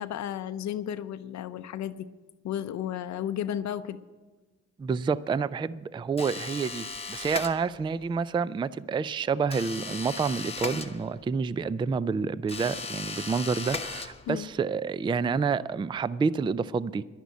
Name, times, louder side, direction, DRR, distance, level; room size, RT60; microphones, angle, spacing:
voice 1, 0.0-2.1 2.4-4.0 14.3-14.5, left 10 dB, 65° left, 10 dB, 0.6 m, -33 dB
voice 2, 4.8-17.0, right 5 dB, 15° right, 18 dB, 0.3 m, -28 dB
sound 1, 6.2-8.0 9.5-11.4 12.5-14.5, left 4 dB, 20° left, 1.0 m, -37 dB
11.0 x 10.0 x 8.3 m, 1.3 s
cardioid pair, 90°, 30 cm